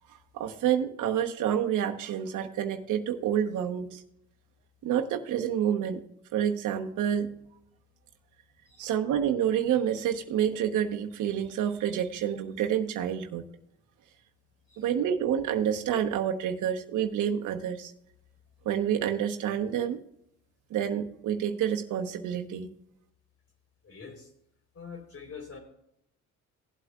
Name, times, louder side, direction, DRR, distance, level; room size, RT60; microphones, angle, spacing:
voice 1, 0.3-4.0 4.8-6.0 6.3-7.3 8.8-13.4 14.8-17.9 18.6-20.0 20.7-22.7, right 9 dB, 85° right, 5 dB, 1.1 m, -28 dB
voice 2, 23.8-24.3 24.7-25.6, left 5 dB, 50° left, 2 dB, 4.1 m, -45 dB
17.5 x 8.2 x 2.4 m, 0.75 s
cardioid pair, 90°, 30 cm